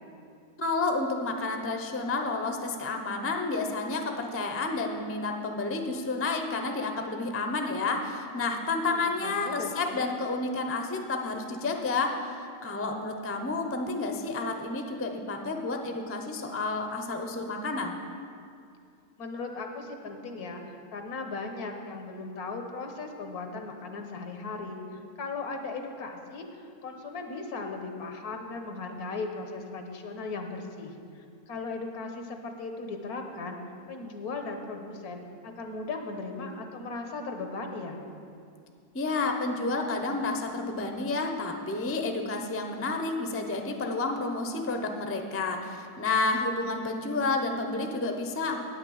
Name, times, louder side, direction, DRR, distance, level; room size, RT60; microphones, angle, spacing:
voice 1, 0.6-17.9 38.9-48.6, left 3 dB, 20° left, 5 dB, 0.3 m, -30 dB
voice 2, 8.9-10.1 19.2-20.6 20.9-24.8 25.2-33.6 33.9-38.0, left 3 dB, 85° left, 4 dB, 1.5 m, -37 dB
9.3 x 5.9 x 8.4 m, 2.4 s
omnidirectional pair, 1.5 m